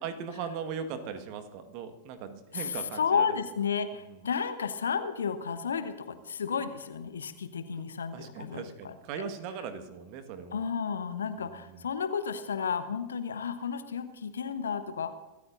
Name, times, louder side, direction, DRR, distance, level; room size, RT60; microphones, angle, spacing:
voice 1, 0.0-3.4 3.9-4.2 8.1-10.7 11.4-11.9, right 6 dB, 45° right, 9 dB, 1.6 m, -39 dB
voice 2, 2.5-8.9 10.5-15.1, left 6 dB, 70° left, 11 dB, 1.0 m, -32 dB
24.5 x 13.5 x 2.6 m, 1.1 s
figure-of-eight pair, 90°, 0 cm